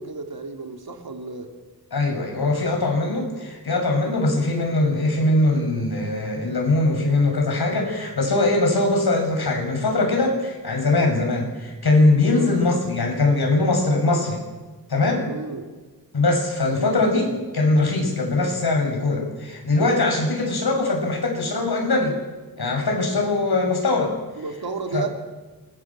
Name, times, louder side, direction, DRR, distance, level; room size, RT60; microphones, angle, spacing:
voice 1, 0.0-1.5 12.3-12.6 15.2-15.7 24.4-25.1, right 4 dB, 70° right, 4 dB, 2.9 m, -32 dB
voice 2, 1.9-14.4 14.9-15.3 16.1-22.1 22.6-24.1 24.9-25.0, left 2 dB, 75° left, 1 dB, 7.5 m, -21 dB
27.5 x 22.5 x 7.6 m, 1.3 s
wide cardioid pair, 125°, 38 cm